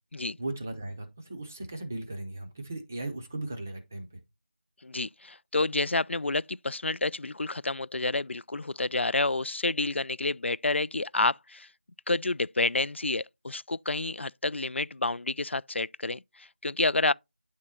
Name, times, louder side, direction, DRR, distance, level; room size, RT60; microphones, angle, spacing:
voice 1, 0.4-4.2, right 2 dB, 15° right, 0.5 m, -37 dB
voice 2, 4.8-11.7 12.1-17.1, left 2 dB, 85° left, 0.4 m, -29 dB
9.8 x 3.7 x 4.1 m
figure-of-eight pair, 175°, 6 cm